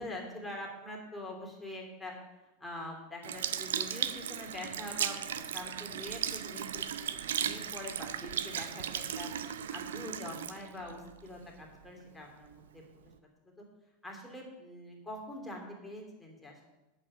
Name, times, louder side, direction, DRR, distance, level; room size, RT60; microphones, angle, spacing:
voice 1, 0.0-2.1 2.6-7.1 7.4-9.3 9.7-12.8 13.6-13.7 14.0-16.7, left 1 dB, 5° left, -1 dB, 3.0 m, -44 dB
Sink (filling or washing) / Liquid, 3.2-11.8 12.4-12.6, right 9 dB, 70° right, 0.6 m, -36 dB
8.7 x 6.8 x 7.6 m, 1.1 s
figure-of-eight pair, 85°, 0 cm